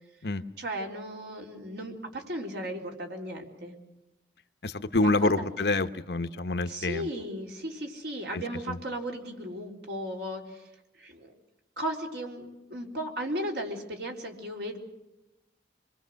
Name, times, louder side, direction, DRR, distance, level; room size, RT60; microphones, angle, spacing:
voice 1, 0.6-3.8 5.0-5.5 6.7-10.7 11.0-11.3 11.8-14.8, equal, 75° right, 1 dB, 3.9 m, -36 dB
voice 2, 4.6-7.1 8.3-8.4 8.7-8.8, left 2 dB, 70° left, 10 dB, 0.9 m, -27 dB
26.5 x 22.5 x 6.4 m, 0.95 s
head